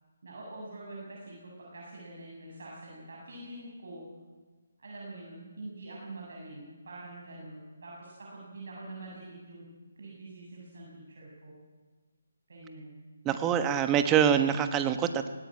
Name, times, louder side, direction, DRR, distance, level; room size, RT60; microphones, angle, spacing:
voice 1, 0.2-4.0 4.8-9.7 10.0-11.6 12.5-13.0, right 2 dB, 65° right, -3 dB, 7.4 m, -45 dB
voice 2, 13.2-15.3, right 9 dB, 15° right, 9 dB, 1.3 m, -25 dB
19.0 x 18.0 x 8.9 m, 1.3 s
hypercardioid pair, 160°, 0 cm